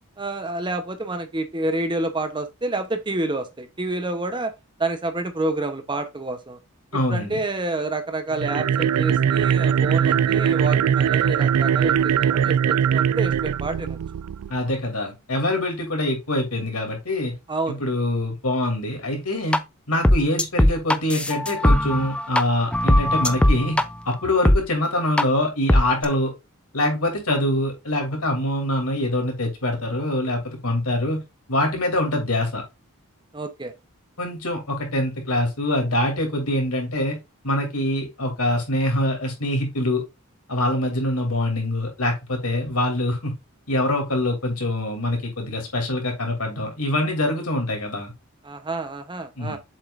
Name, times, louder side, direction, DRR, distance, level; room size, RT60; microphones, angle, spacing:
voice 1, 0.2-4.5 4.8-6.6 7.1-14.0 17.5-17.8 33.3-33.7 48.4-49.6, right 2 dB, 20° right, 0.8 m, -28 dB
voice 2, 6.9-7.4 14.5-17.3 17.7-19.6 19.9-26.3 26.7-31.2 31.5-32.6 34.2-37.2 37.4-40.0 40.5-43.3 43.7-48.1 49.4-49.6, left 1 dB, 80° left, 2.7 m, -24 dB
sound 1, 8.3-14.6, right 8 dB, 85° right, 0.3 m, -21 dB
sound 2, 19.5-19.6 20.0-22.4 22.7-23.9 24.5-24.6 25.2-25.3 25.7-26.1, left 1 dB, 5° left, 0.4 m, -18 dB
7.3 x 5.3 x 2.5 m
head